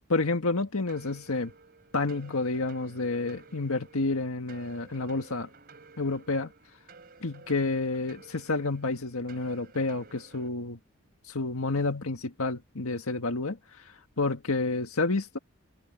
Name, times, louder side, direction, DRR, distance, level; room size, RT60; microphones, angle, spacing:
voice 1, 0.1-1.5 1.9-5.5 6.0-6.5 7.2-10.8 11.3-13.6 14.2-15.4, left 3 dB, 90° left, 1.7 m, -29 dB
sound 1, 0.9-10.5, right 4 dB, 45° right, 3.9 m, -53 dB
head